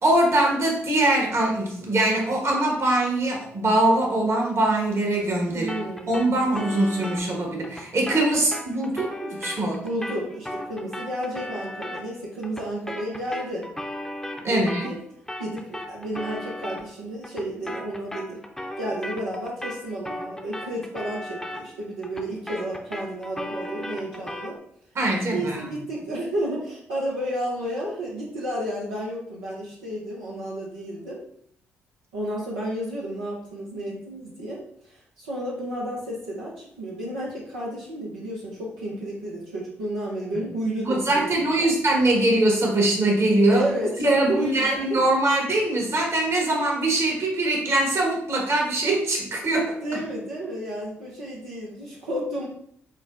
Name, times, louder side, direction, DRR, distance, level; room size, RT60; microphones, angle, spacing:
voice 1, 0.0-5.7 6.1-9.8 14.4-14.9 24.9-25.6 40.3-40.4 40.8-43.6 44.0-49.8, right 1 dB, 50° right, -1 dB, 1.4 m, -22 dB
voice 2, 5.5-6.4 8.3-8.4 9.8-13.7 14.4-15.0 15.4-18.4 18.8-24.6 25.3-31.2 32.1-41.7 43.5-45.0 49.8-52.5, right 1 dB, 90° right, -6 dB, 0.7 m, -32 dB
sound 1, 5.7-15.0 15.3-24.6, left 1 dB, 5° left, 0.7 m, -37 dB
6.3 x 2.2 x 2.5 m, 0.66 s
hypercardioid pair, 45°, 6 cm